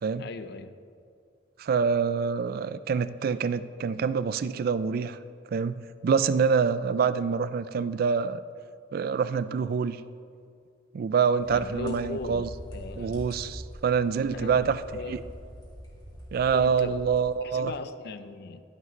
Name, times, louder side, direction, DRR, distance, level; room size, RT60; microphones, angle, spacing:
voice 1, 0.2-0.7 11.5-13.2 14.3-14.5 14.9-15.3 16.5-17.0 17.4-18.6, left 3 dB, 60° left, 11 dB, 0.5 m, -38 dB
voice 2, 1.6-5.2 5.5-8.4 8.9-10.0 10.9-12.5 13.0-14.8 15.1-15.2 16.3-17.7, right 6 dB, 50° right, 14 dB, 0.3 m, -26 dB
sound 1, 11.4-17.7, equal, 25° left, 2.4 m, -44 dB
12.0 x 11.0 x 3.1 m, 2.3 s
head